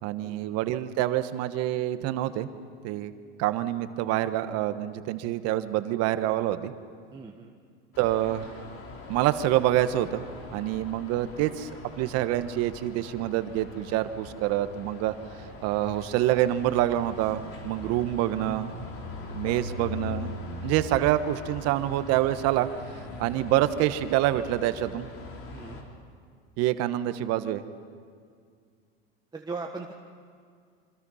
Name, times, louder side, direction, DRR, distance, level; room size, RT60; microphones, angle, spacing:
voice 1, 0.0-2.5 2.8-3.1 3.4-6.7 8.0-8.5 9.1-10.2 10.5-11.7 12.0-15.1 15.6-18.7 19.3-20.4 20.6-22.7 23.2-25.1 26.6-27.6, right 13 dB, 55° right, 11 dB, 1.2 m, -26 dB
voice 2, 7.1-7.5 19.4-19.6 25.5-25.8 29.3-29.9, right 4 dB, 15° right, 0 dB, 1.5 m, -39 dB
sound 1, 7.9-25.8, left 3 dB, 45° left, 3.8 m, -41 dB
26.0 x 25.5 x 5.6 m, 2.1 s
supercardioid pair, 115°, 30 cm